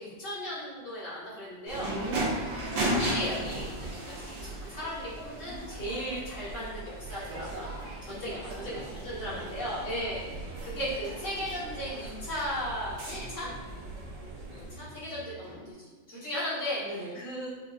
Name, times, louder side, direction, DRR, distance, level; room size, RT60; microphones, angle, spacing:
voice 1, 0.0-1.9 3.0-7.7 8.1-13.5 14.5-16.8 17.1-17.5, equal, 45° left, -11 dB, 1.7 m, -36 dB
voice 2, 1.7-2.4 5.4-5.7 7.3-10.5 16.8-17.2, right 1 dB, 70° right, -6 dB, 0.6 m, -42 dB
sound 1, 1.7-14.8, right 1 dB, 90° right, 1.6 m, -37 dB
sound 2, 8.7-15.7, right 1 dB, 85° left, 1.4 m, -49 dB
5.0 x 2.6 x 2.4 m, 1.3 s
omnidirectional pair, 1.9 m